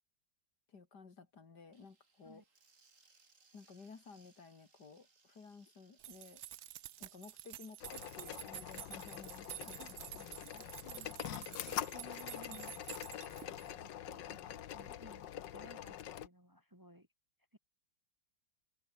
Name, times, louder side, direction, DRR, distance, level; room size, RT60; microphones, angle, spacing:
voice 1, 0.7-2.4 3.5-6.4 7.0-9.8 10.1-10.7 12.5-12.6 13.0-13.1, left 4 dB, 65° left, 3.2 m, -55 dB
sound 1, 1.7-12.2, right 4 dB, 45° right, 3.0 m, -71 dB
sound 2, 6.0-13.7, right 13 dB, 65° right, 1.1 m, -50 dB
sound 3, 7.8-16.3, left 11 dB, 80° left, 1.7 m, -45 dB
voice 2, 10.4-13.1 13.4-17.1 17.5-17.6, equal, 10° right, 2.5 m, -58 dB
open air
omnidirectional pair, 2.0 m